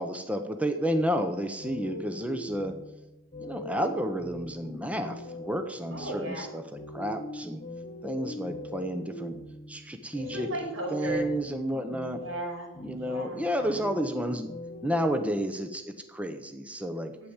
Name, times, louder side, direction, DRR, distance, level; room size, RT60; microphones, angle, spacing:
voice 1, 0.0-2.8 3.4-7.6 8.0-9.4 9.7-10.5 10.9-12.2 12.8-14.5 14.8-17.2, equal, 5° right, 7 dB, 0.8 m, -31 dB
sound 1, 1.6-15.3, left 1 dB, 35° left, 1.2 m, -42 dB
voice 2, 5.9-6.5 10.1-11.3 12.2-13.7 17.2-17.3, right 1 dB, 90° right, -1 dB, 6.1 m, -36 dB
12.0 x 9.3 x 7.2 m, 0.97 s
head